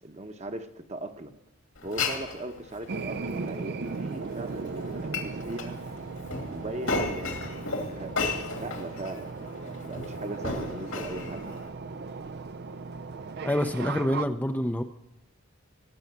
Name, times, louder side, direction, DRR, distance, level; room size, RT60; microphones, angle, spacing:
voice 1, 0.0-1.3 1.8-5.8 6.4-11.4, right 2 dB, 30° right, 7 dB, 1.0 m, -39 dB
Glass, 1.8-11.7, left 3 dB, 75° left, 2.8 m, -35 dB
sound 1, 2.9-14.3, right 4 dB, 50° right, 0.4 m, -37 dB
voice 2, 13.4-14.8, left 1 dB, 10° left, 5 dB, 0.5 m, -27 dB
19.5 x 6.9 x 9.3 m, 0.95 s
head